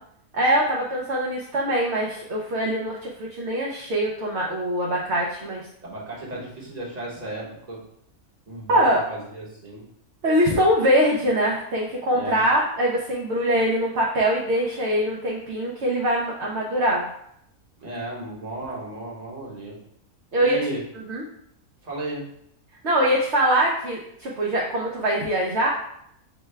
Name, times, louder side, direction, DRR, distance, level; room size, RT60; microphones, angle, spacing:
voice 1, 0.3-5.7 8.7-9.0 10.2-17.1 20.3-20.6 21.1-21.2 22.8-25.7, equal, 60° right, -3 dB, 0.9 m, -23 dB
voice 2, 5.8-7.8 8.5-9.9 12.1-12.5 17.8-19.8 20.4-20.8 21.8-22.3, right 1 dB, 30° right, -4 dB, 1.2 m, -34 dB
6.4 x 2.3 x 3.2 m, 0.72 s
omnidirectional pair, 1.5 m